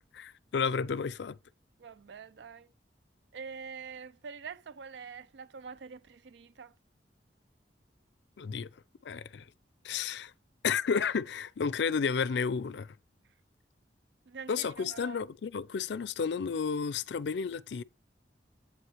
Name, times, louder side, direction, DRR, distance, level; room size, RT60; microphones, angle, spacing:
voice 1, 0.1-1.4 8.4-8.7 9.0-9.4 9.8-10.3 10.6-12.9 14.5-17.8, left 6 dB, 75° left, 0.4 m, -32 dB
voice 2, 1.8-2.7 3.3-6.7 9.1-9.2 14.3-15.2, right 5 dB, 75° right, 0.4 m, -45 dB
7.9 x 7.8 x 3.0 m
head